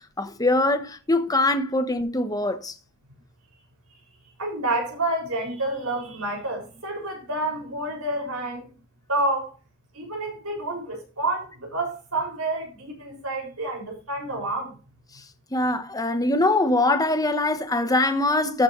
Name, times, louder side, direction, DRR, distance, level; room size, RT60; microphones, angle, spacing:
voice 1, 0.0-2.7 15.5-18.6, left 2 dB, 15° left, 1.1 m, -23 dB
voice 2, 4.4-8.7 9.1-9.5 9.9-14.8, right 2 dB, 70° right, 6.2 m, -29 dB
14.0 x 7.1 x 3.2 m
head